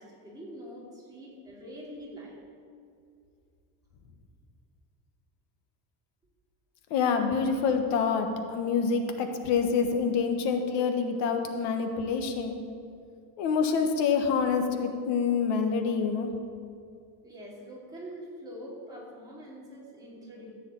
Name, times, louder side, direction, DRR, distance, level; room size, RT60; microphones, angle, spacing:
voice 1, 0.0-2.4 17.2-20.5, equal, 10° right, -6 dB, 2.8 m, -44 dB
voice 2, 6.9-12.6 13.4-16.3, left 5 dB, 85° left, 5 dB, 1.4 m, -27 dB
14.5 x 5.0 x 8.6 m, 2.4 s
cardioid pair, 180°, 41 cm